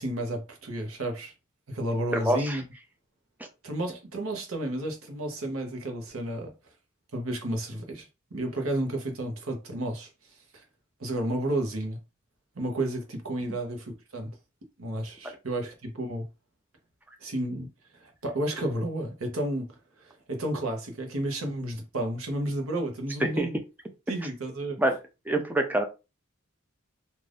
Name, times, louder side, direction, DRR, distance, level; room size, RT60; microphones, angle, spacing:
voice 1, 0.0-1.3 1.7-2.6 3.6-6.5 7.1-10.1 10.5-10.6 11.0-12.0 12.5-14.3 14.8-16.3 17.2-17.7 17.9-19.7 20.0-23.6 24.1-24.8, right 1 dB, 80° right, 0.9 m, -32 dB
voice 2, 2.1-2.6 3.4-3.5 15.2-15.4 23.2-23.5 24.8-25.0 25.3-25.8, right 1 dB, 10° right, 0.4 m, -26 dB
2.5 x 2.5 x 3.4 m
head